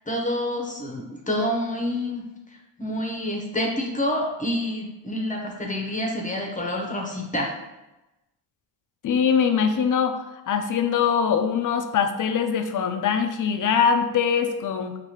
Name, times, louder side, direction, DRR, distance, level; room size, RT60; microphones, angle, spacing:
voice 1, 0.1-2.3 2.8-7.5, left 1 dB, 15° left, 0 dB, 0.8 m, -27 dB
voice 2, 9.0-15.0, left 7 dB, 40° left, 8 dB, 0.5 m, -22 dB
4.7 x 2.6 x 2.9 m, 1.0 s
supercardioid pair, 65°, 48 cm